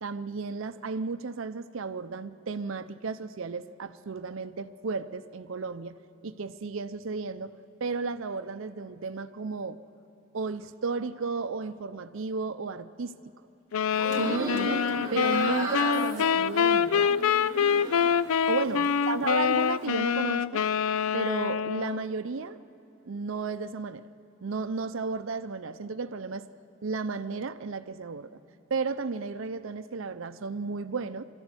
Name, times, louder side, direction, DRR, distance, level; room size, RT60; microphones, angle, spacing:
voice 1, 0.0-9.8 10.3-13.2 14.1-17.1 18.5-20.6 21.1-22.6 23.1-24.0 24.4-26.5 26.8-28.3 28.7-31.2, right 4 dB, 65° right, 11 dB, 0.6 m, -33 dB
sound 1, 13.7-22.1, left 7 dB, 90° left, 0.4 m, -26 dB
sound 2, 13.9-18.3 18.7-19.4, right 2 dB, 20° right, 2.9 m, -36 dB
23.0 x 14.5 x 9.7 m, 2.9 s
head